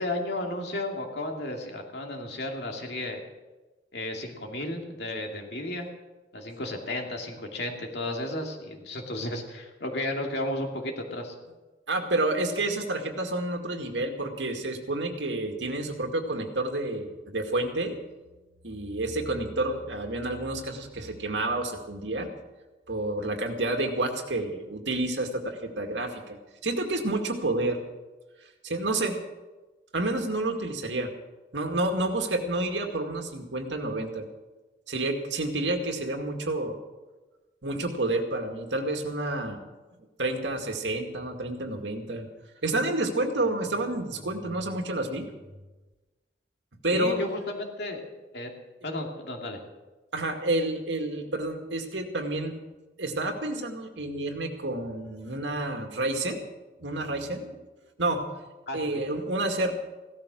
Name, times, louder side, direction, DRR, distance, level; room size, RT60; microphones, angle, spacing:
voice 1, 0.0-3.2 3.9-5.9 6.3-11.3 46.9-48.0 48.3-48.5 48.8-49.6 58.7-59.0, left 1 dB, 65° left, 2 dB, 2.6 m, -33 dB
voice 2, 11.9-18.0 18.6-22.3 22.9-27.8 28.6-29.2 29.9-31.1 31.5-34.3 34.9-36.8 37.6-39.6 40.2-42.3 42.6-45.3 46.8-47.2 50.1-52.5 53.0-56.4 56.8-57.6 58.0-58.2 58.7-59.7, right 2 dB, 85° right, 4 dB, 2.2 m, -29 dB
16.5 x 13.0 x 6.3 m, 1.2 s
head